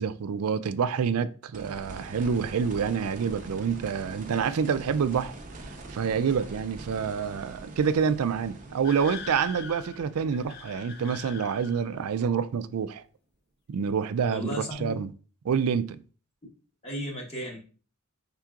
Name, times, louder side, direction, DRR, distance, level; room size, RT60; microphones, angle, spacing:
voice 1, 0.0-5.3 5.9-13.0 13.7-15.1 15.4-16.0, right 6 dB, 75° right, 0.4 m, -27 dB
sound 1, 1.5-12.4 14.7-14.8, right 2 dB, 35° right, 0.7 m, -44 dB
sound 2, 8.8-12.0, left 6 dB, 45° left, 0.5 m, -42 dB
voice 2, 14.3-14.9 16.8-17.6, equal, 30° left, 1.3 m, -34 dB
5.8 x 3.6 x 2.4 m
head